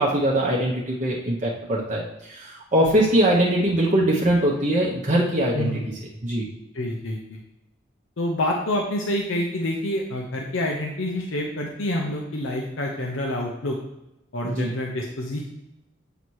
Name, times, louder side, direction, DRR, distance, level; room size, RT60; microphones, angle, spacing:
voice 1, 0.0-5.7 6.2-6.5 14.4-14.7, right 1 dB, 35° right, -4 dB, 0.8 m, -22 dB
voice 2, 6.7-7.4 8.2-13.8 14.3-15.4, left 1 dB, 75° left, -1 dB, 0.7 m, -27 dB
8.0 x 2.8 x 4.6 m, 0.92 s
head